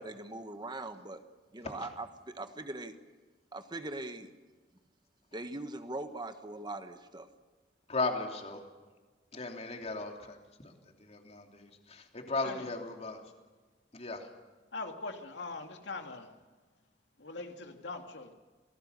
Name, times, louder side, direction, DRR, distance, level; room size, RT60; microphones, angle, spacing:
voice 1, 0.0-1.2 1.5-3.0 3.5-4.3 5.3-7.3, right 2 dB, 25° right, 8 dB, 1.3 m, -41 dB
voice 2, 7.9-8.6 9.3-10.4 10.6-10.7 11.0-13.2 13.9-14.3, left 3 dB, 40° left, 3 dB, 3.1 m, -36 dB
voice 3, 14.7-16.3 17.2-18.3, left 3 dB, 85° left, 5 dB, 2.5 m, -41 dB
28.0 x 19.0 x 6.8 m, 1.4 s
head